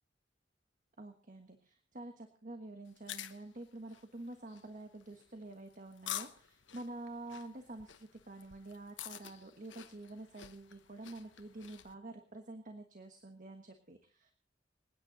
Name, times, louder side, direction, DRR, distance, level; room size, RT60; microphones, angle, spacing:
voice 1, 1.0-14.3, right 2 dB, 45° right, 6 dB, 1.4 m, -48 dB
sound 1, 2.9-11.9, left 11 dB, 90° left, 1.1 m, -49 dB
26.0 x 9.6 x 4.1 m, 0.40 s
head